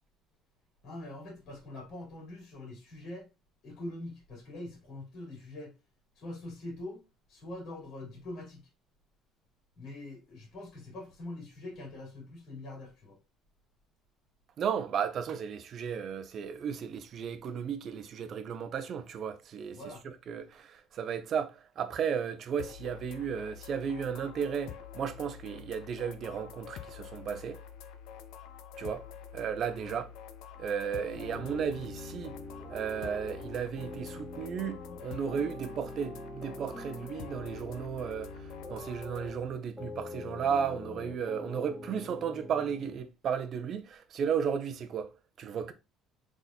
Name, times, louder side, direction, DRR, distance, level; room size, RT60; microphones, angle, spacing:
voice 1, 0.8-3.3 3.6-5.7 6.2-7.0 7.3-8.7 9.8-13.2 19.7-20.0 29.8-30.0, left 1 dB, 50° left, 2.4 m, -43 dB
voice 2, 14.6-19.8 20.3-27.6 28.8-29.1 29.3-30.1 30.6-32.4 32.7-45.7, right 7 dB, 45° right, 0.6 m, -34 dB
sound 1, 22.6-39.3, left 8 dB, 75° left, 0.5 m, -47 dB
sound 2, 31.1-43.0, left 2 dB, 10° left, 1.9 m, -44 dB
4.0 x 3.6 x 2.7 m
cardioid pair, 130°, 0 cm